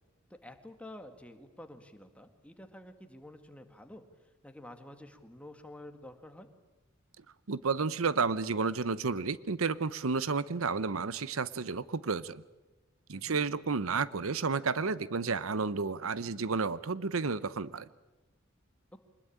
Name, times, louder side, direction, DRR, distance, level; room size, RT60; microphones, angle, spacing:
voice 1, 0.3-4.0 4.4-6.5 13.1-13.4, left 1 dB, 5° left, 7 dB, 2.0 m, -49 dB
voice 2, 7.5-12.4 13.1-17.9, right 4 dB, 90° right, 17 dB, 0.8 m, -31 dB
24.5 x 20.5 x 8.8 m, 1.1 s
head